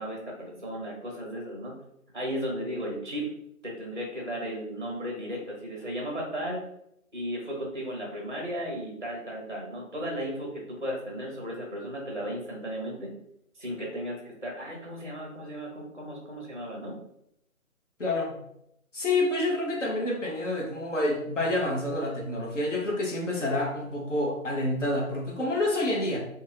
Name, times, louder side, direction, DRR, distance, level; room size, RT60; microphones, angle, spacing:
voice 1, 0.0-1.8 2.1-3.3 3.6-6.6 7.1-13.1 13.6-17.0, equal, 35° right, -1 dB, 0.5 m, -35 dB
voice 2, 18.0-18.3 18.9-26.2, left 2 dB, 60° left, -1 dB, 0.9 m, -28 dB
2.5 x 2.2 x 3.2 m, 0.77 s
figure-of-eight pair, 175°, 43 cm